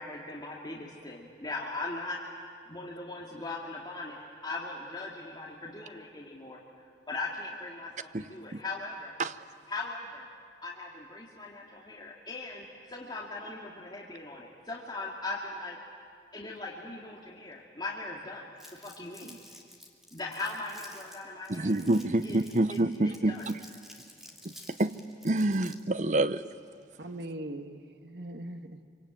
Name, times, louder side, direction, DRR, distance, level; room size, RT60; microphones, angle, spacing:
voice 1, 0.0-2.2 2.7-6.6 7.1-9.1 9.7-10.3 10.6-15.8 16.3-19.4 20.1-21.8 22.2-23.4, left 2 dB, 25° left, -4 dB, 2.3 m, -39 dB
Crumpling crinkling, 18.6-26.0, equal, ahead, 2.5 m, -52 dB
voice 2, 21.5-23.6 24.8-24.9 25.2-26.4, right 2 dB, 40° right, 12 dB, 0.7 m, -27 dB
voice 3, 27.0-28.8, right 1 dB, 70° right, 6 dB, 1.5 m, -41 dB
26.0 x 24.5 x 9.2 m, 2.2 s
head